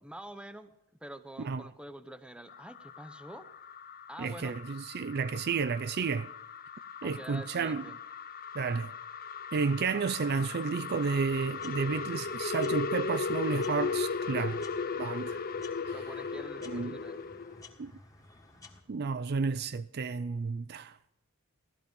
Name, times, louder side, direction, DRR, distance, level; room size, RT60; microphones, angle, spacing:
voice 1, 0.0-0.7 1.0-3.5 4.1-4.6 7.0-8.0 15.9-17.3, right 1 dB, 5° right, 0.8 m, -46 dB
sound 1, 2.5-17.6, left 5 dB, 40° left, 0.6 m, -37 dB
voice 2, 4.2-6.3 7.0-7.8 8.5-8.9 9.5-14.6 15.0-15.4 15.9-16.0 16.6-16.9 17.8-17.9 18.9-21.0, right 5 dB, 45° right, 0.4 m, -31 dB
sound 2, 11.0-18.8, left 2 dB, 15° left, 1.6 m, -55 dB
16.5 x 13.0 x 5.3 m
head